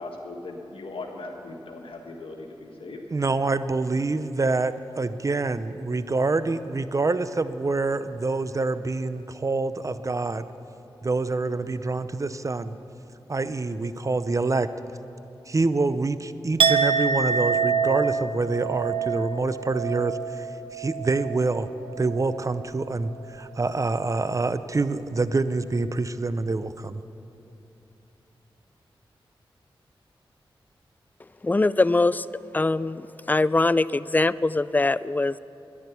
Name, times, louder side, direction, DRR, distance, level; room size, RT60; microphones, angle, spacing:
voice 1, 0.0-3.0, left 2 dB, 75° left, 1 dB, 1.7 m, -38 dB
voice 2, 3.1-10.5 11.0-12.8 13.3-14.7 15.5-20.5 20.7-21.7 22.0-27.0, right 3 dB, 35° right, 13 dB, 0.6 m, -26 dB
Chink clink, 16.6-22.5 22.8-23.2, right 6 dB, 75° right, 0.7 m, -27 dB
voice 3, 31.4-32.3 32.5-35.4, left 2 dB, 20° left, 18 dB, 0.3 m, -22 dB
11.0 x 10.5 x 8.2 m, 2.9 s
cardioid pair, 45°, 9 cm